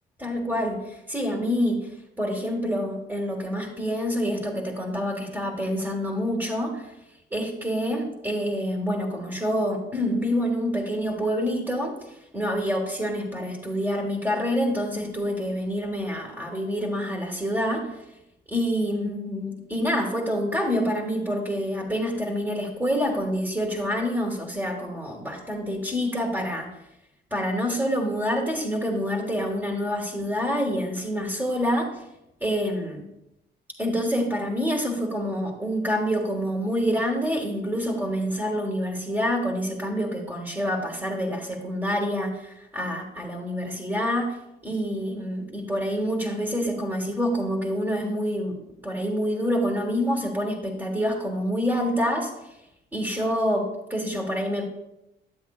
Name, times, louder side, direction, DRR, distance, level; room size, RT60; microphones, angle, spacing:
voice 1, 0.2-6.9 7.3-18.0 18.5-26.7 27.3-32.0 32.4-33.1 33.8-44.4 44.6-48.6 48.8-52.3 52.9-54.7, equal, 10° right, 0 dB, 1.4 m, -27 dB
10.5 x 7.6 x 2.4 m, 0.87 s
cardioid pair, 90°, 20 cm